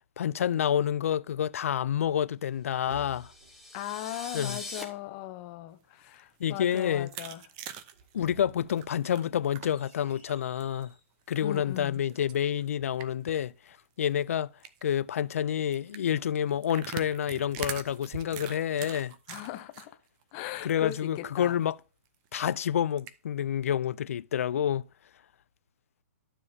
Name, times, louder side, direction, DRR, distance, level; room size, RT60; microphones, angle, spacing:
voice 1, 0.2-3.3 4.3-4.6 6.4-7.1 8.1-10.9 11.3-14.5 14.8-19.2 20.6-21.8 22.3-24.9, left 9 dB, 65° left, 0.4 m, -28 dB
sound 1, 2.2-3.7 7.8-11.1, right 3 dB, 50° right, 3.9 m, -54 dB
sound 2, 2.9-4.8, left 2 dB, ahead, 1.1 m, -42 dB
voice 2, 3.7-7.4 11.4-12.0 19.3-20.0 20.3-21.6, left 14 dB, 30° left, 0.8 m, -38 dB
sound 3, 6.0-9.9 10.3-10.8 11.3-13.4 13.7-13.8 14.1-14.2 14.6-14.9 15.7-19.9 20.2-21.0 21.4-21.5 21.8-21.9 22.9-23.1, right 11 dB, 25° right, 0.6 m, -43 dB
12.0 x 6.9 x 2.8 m
hypercardioid pair, 160°, 8 cm